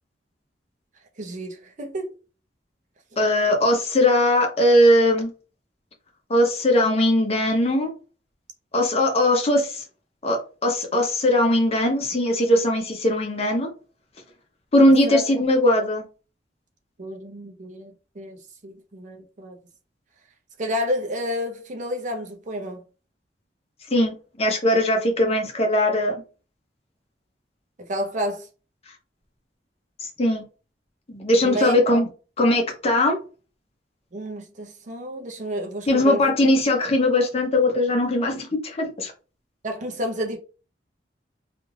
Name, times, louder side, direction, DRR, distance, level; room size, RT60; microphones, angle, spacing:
voice 1, 1.2-2.1 15.0-15.3 17.0-17.9 18.2-18.4 18.6-19.6 20.6-22.8 27.8-28.5 31.4-31.8 34.1-36.2 39.6-40.4, equal, 45° right, 0.6 m, -30 dB
voice 2, 3.2-5.3 6.3-7.9 8.7-9.8 10.2-13.7 14.7-16.0 23.9-26.2 30.0-30.4 31.1-32.1 32.4-33.2 35.9-39.1, left 1 dB, 35° left, 0.7 m, -20 dB
2.5 x 2.3 x 3.1 m
head